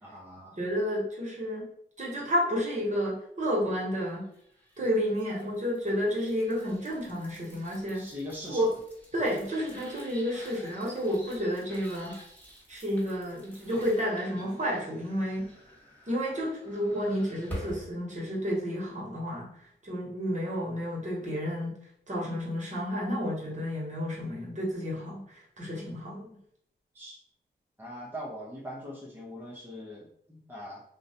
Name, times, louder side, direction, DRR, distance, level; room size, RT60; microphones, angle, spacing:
voice 1, 0.0-0.7 7.9-8.6 26.9-27.2 27.8-30.8, equal, 10° right, -4 dB, 0.7 m, -41 dB
voice 2, 0.6-1.7 2.0-4.3 4.8-8.1 8.5-8.7 9.1-12.2 12.7-15.5 16.1-19.5 19.8-21.8 22.1-26.4, equal, 40° right, -4 dB, 1.0 m, -31 dB
sound 1, 4.3-17.9, equal, 10° left, 1.2 m, -48 dB
2.4 x 2.0 x 2.7 m, 0.68 s
cardioid pair, 55°, 19 cm